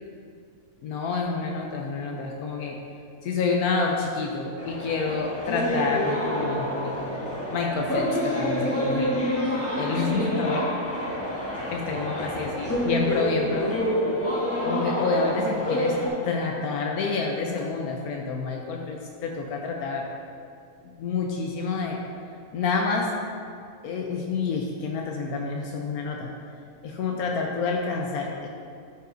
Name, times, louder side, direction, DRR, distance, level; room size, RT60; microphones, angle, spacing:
voice 1, 0.8-2.8 3.2-9.1 9.4-10.7 11.7-13.7 14.6-16.0 16.2-20.0 21.0-22.0 22.5-23.1 23.8-26.3 26.8-28.5, left 4 dB, 80° left, 1 dB, 1.1 m, -28 dB
sound 1, 4.6-16.1, equal, 10° left, 0.9 m, -27 dB
11.0 x 5.5 x 2.6 m, 2.4 s
omnidirectional pair, 1.6 m